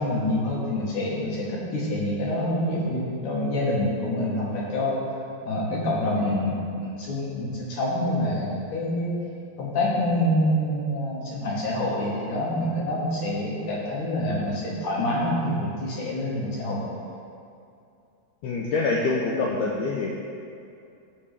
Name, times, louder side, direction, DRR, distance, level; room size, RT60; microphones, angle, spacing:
voice 1, 0.0-5.0 5.4-9.2 9.6-16.8, left 1 dB, 65° left, -4 dB, 2.7 m, -26 dB
voice 2, 18.4-20.1, left 3 dB, 80° left, -2 dB, 1.8 m, -25 dB
16.0 x 5.4 x 3.4 m, 2.6 s
omnidirectional pair, 4.4 m